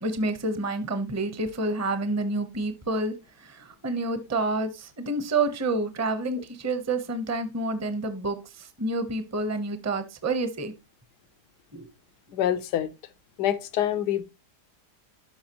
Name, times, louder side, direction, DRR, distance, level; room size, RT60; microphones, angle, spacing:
voice 1, 0.0-10.7 11.7-11.9, right 2 dB, 15° right, 0.5 m, -29 dB
voice 2, 12.3-12.9 13.4-14.2, left 11 dB, 90° left, 1.3 m, -26 dB
11.5 x 5.7 x 2.9 m
omnidirectional pair, 1.7 m